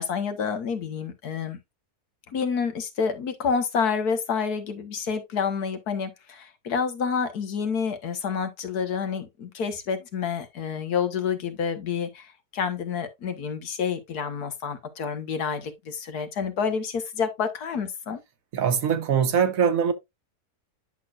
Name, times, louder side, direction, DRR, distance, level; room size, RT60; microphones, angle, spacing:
voice 1, 0.0-1.6 2.3-18.2, left 6 dB, 75° left, 1.7 m, -28 dB
voice 2, 18.5-19.9, right 7 dB, 65° right, 1.3 m, -22 dB
10.0 x 6.1 x 2.4 m
omnidirectional pair, 1.7 m